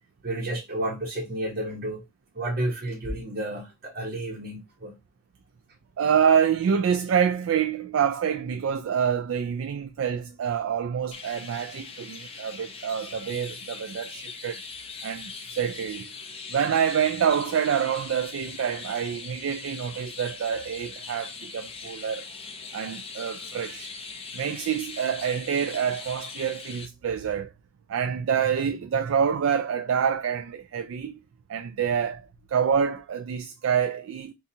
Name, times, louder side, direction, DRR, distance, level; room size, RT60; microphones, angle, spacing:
voice 1, 0.2-2.0 2.3-5.0, right 1 dB, 45° right, 0.8 m, -31 dB
voice 2, 6.0-14.6 15.0-16.1 16.5-22.2 22.7-23.9 24.3-27.5 27.9-31.2 31.5-34.3, right 7 dB, 70° right, 0.3 m, -27 dB
Chirp tweet, 11.1-26.9, left 4 dB, 25° left, 0.6 m, -41 dB
4.0 x 2.3 x 2.6 m
head